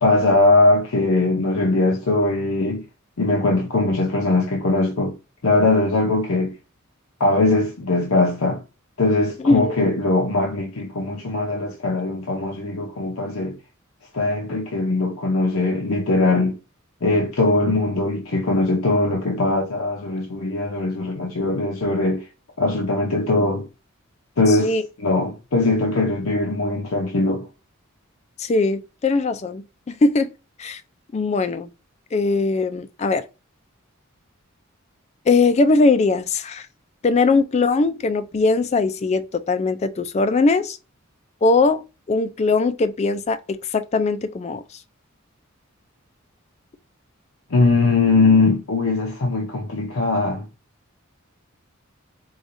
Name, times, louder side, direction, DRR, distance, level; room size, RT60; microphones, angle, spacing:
voice 1, 0.0-2.8 3.2-5.2 5.4-6.5 7.2-8.6 9.0-13.6 14.1-16.6 17.0-22.2 22.6-23.6 24.4-27.5 47.5-50.4, left 2 dB, 80° left, 0.8 m, -20 dB
voice 2, 9.4-9.8 24.5-24.8 28.4-29.6 30.0-30.3 30.6-30.8 31.1-31.7 32.1-33.2 35.3-36.7 37.0-40.8 41.4-44.6, left 3 dB, 30° left, 0.3 m, -20 dB
4.8 x 2.3 x 2.6 m
head